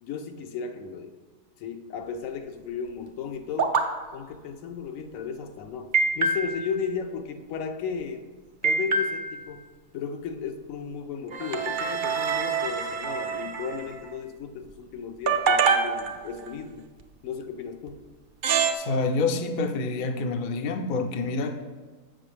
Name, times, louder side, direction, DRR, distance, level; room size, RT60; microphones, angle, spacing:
voice 1, 0.0-1.1 1.6-3.8 4.1-8.3 8.6-9.7 9.9-16.9 17.2-18.0, left 6 dB, 75° left, 6 dB, 1.0 m, -35 dB
sound 1, 3.6-3.8 5.9-6.8 8.6-9.5 11.3-14.0 15.3-16.5 17.9-18.0 18.4-18.7, right 4 dB, 60° right, 0.5 m, -25 dB
voice 2, 18.7-21.6, left 3 dB, 55° left, 6 dB, 0.5 m, -27 dB
7.7 x 6.0 x 3.2 m, 1.4 s
omnidirectional pair, 1.4 m